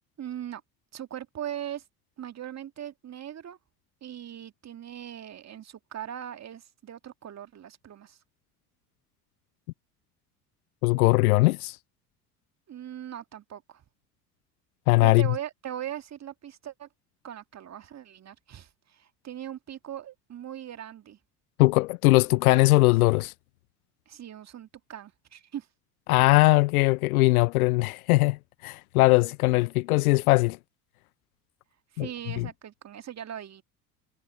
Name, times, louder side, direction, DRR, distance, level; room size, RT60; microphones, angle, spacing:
voice 1, 0.2-0.6 0.9-1.8 2.2-3.6 4.0-8.2 12.7-13.8 15.0-16.9 17.2-21.2 24.1-25.7 31.9-33.6, right 10 dB, 35° right, 2.1 m, -40 dB
voice 2, 10.8-11.8 14.9-15.3 21.6-23.3 26.1-28.4 28.6-30.6 32.0-32.1 32.4-32.5, left 21 dB, 65° left, 0.9 m, -20 dB
figure-of-eight pair, 65°, 48 cm